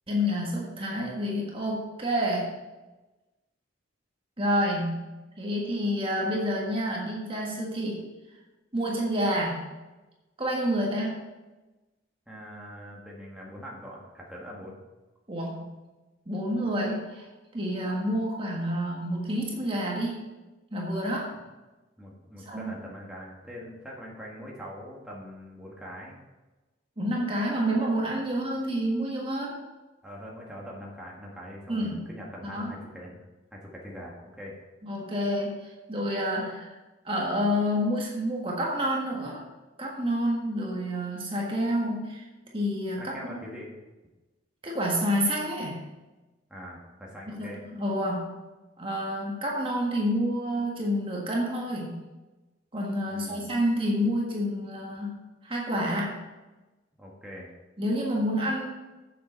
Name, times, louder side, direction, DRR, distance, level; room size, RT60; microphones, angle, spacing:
voice 1, 0.1-2.6 4.4-5.0 5.4-8.0 8.7-9.7 10.4-11.3 15.3-15.7 16.3-17.3 17.5-20.3 20.7-21.3 22.4-22.7 27.0-29.6 31.7-32.0 32.5-32.7 34.8-36.7 37.0-39.4 39.8-42.2 42.5-43.0 44.6-45.8 47.3-48.3 48.8-51.9 52.7-55.2 55.4-56.2 57.8-58.7, equal, 30° right, -2 dB, 1.6 m, -28 dB
voice 2, 12.3-14.8 22.0-26.2 30.0-33.2 33.5-34.5 43.0-43.7 46.5-47.6 53.1-53.5 57.0-57.5, equal, 5° right, -4 dB, 1.7 m, -43 dB
7.7 x 6.7 x 6.4 m, 1.1 s
head